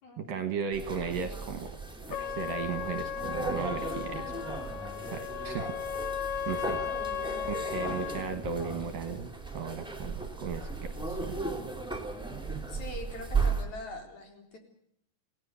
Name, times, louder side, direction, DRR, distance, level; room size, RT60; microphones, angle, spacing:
voice 1, 0.2-1.7 2.2-4.6 5.0-5.8 6.5-6.8 7.4-11.4, right 6 dB, 65° right, 7 dB, 2.7 m, -36 dB
sound 1, 0.7-13.6, right 4 dB, ahead, 2.5 m, -36 dB
Trumpet, 2.1-8.3, left 9 dB, 65° left, 1.9 m, -36 dB
voice 2, 6.8-7.7 12.7-14.6, left 2 dB, 45° left, 3 dB, 4.9 m, -43 dB
28.0 x 17.5 x 7.0 m, 0.71 s
omnidirectional pair, 5.1 m